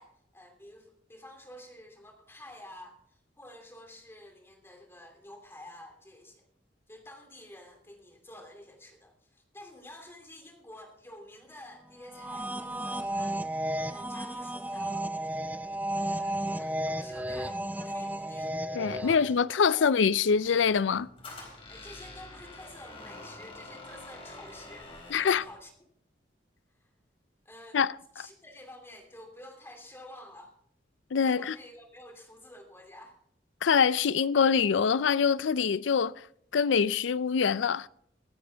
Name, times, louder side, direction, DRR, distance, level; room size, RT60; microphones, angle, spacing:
voice 1, 0.0-6.4 6.9-13.4 13.9-15.1 15.9-18.5 19.0-20.0 21.7-24.9 25.2-25.7 26.8-26.9 27.4-27.8 28.1-30.5 31.2-33.2, left 1 dB, 15° left, 2.7 m, -49 dB
sound 1, 12.0-19.4, right 1 dB, 10° right, 0.4 m, -33 dB
voice 2, 18.7-21.1 25.1-25.4 27.7-28.0 31.1-31.6 33.6-36.3 36.5-37.9, left 6 dB, 80° left, 0.4 m, -24 dB
Squeak, 20.3-25.6, left 2 dB, 30° left, 4.1 m, -47 dB
24.5 x 9.5 x 3.4 m
head